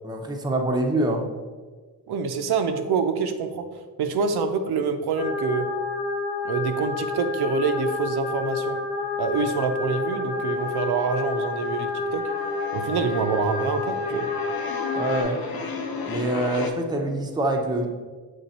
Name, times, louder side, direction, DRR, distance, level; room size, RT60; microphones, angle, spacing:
voice 1, 0.0-1.2 14.9-15.4 16.1-17.9, right 1 dB, 10° right, 2 dB, 0.5 m, -25 dB
voice 2, 2.1-3.7 4.0-5.7 6.4-8.8 9.2-12.3 12.7-14.3, right 5 dB, 75° right, 7 dB, 0.6 m, -26 dB
sound 1, 5.2-15.2, left 3 dB, 85° left, 1.1 m, -29 dB
sound 2, 8.5-9.3 9.5-16.7, left 4 dB, 65° left, 0.8 m, -36 dB
6.9 x 3.3 x 4.1 m, 1.4 s
wide cardioid pair, 135°, 39 cm